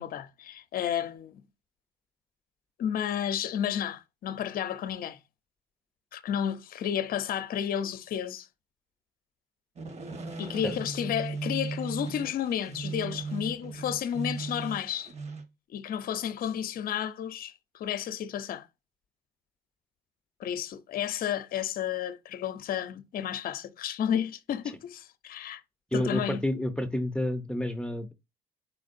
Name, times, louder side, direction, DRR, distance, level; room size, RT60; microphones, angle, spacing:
voice 1, 0.0-1.4 2.8-5.2 6.1-8.5 10.4-15.1 15.7-18.7 20.4-25.6 25.9-26.4, left 9 dB, 55° left, 0.6 m, -32 dB
sound 1, 9.8-15.4, right 4 dB, 40° right, 1.3 m, -37 dB
voice 2, 25.9-28.1, left 1 dB, 5° left, 0.6 m, -29 dB
4.6 x 4.4 x 2.6 m
cardioid pair, 105°, 17 cm